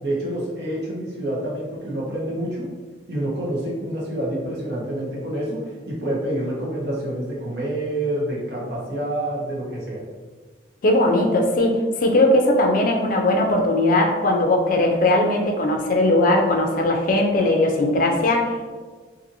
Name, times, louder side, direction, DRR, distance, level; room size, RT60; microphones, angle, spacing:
voice 1, 0.0-2.7 3.1-10.0, right 1 dB, 65° right, -5 dB, 0.9 m, -27 dB
voice 2, 10.8-18.8, left 1 dB, 50° left, 2 dB, 0.4 m, -19 dB
2.7 x 2.5 x 2.6 m, 1.4 s
head